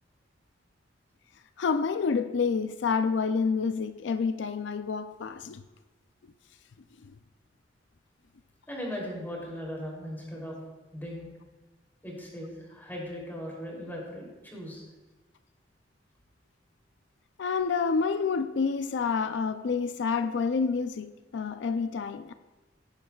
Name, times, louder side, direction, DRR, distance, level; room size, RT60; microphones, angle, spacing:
voice 1, 1.6-5.6 17.4-22.3, left 5 dB, 80° left, 0.4 m, -28 dB
voice 2, 8.7-10.6 10.9-11.3 12.0-14.8, equal, 10° left, 3.1 m, -38 dB
17.0 x 10.0 x 2.4 m
head